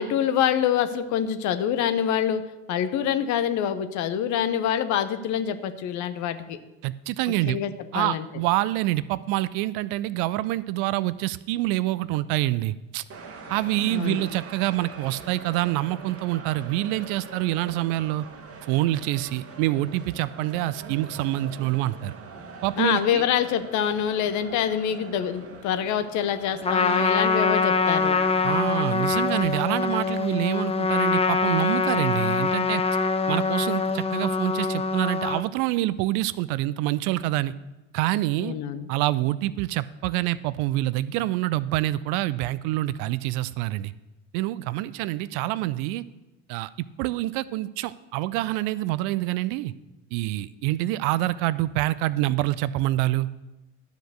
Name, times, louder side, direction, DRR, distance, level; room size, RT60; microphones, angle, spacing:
voice 1, 0.0-2.4 2.7-6.6 7.5-8.2 13.9-14.2 22.8-28.2 38.4-38.9, left 9 dB, 50° left, 10 dB, 1.0 m, -26 dB
voice 2, 6.8-7.6 7.9-13.0 13.5-18.3 18.7-22.1 22.6-23.2 28.4-32.8 33.3-37.5 37.9-38.5 38.9-43.9 44.3-46.0 46.5-49.7 50.1-53.3, right 16 dB, 55° right, 17 dB, 0.5 m, -26 dB
sound 1, 13.1-28.7, right 4 dB, 40° right, 1.4 m, -43 dB
Trumpet, 26.6-35.4, left 4 dB, 15° left, 0.7 m, -24 dB
12.0 x 5.1 x 6.5 m, 1.0 s
figure-of-eight pair, 60°, 37 cm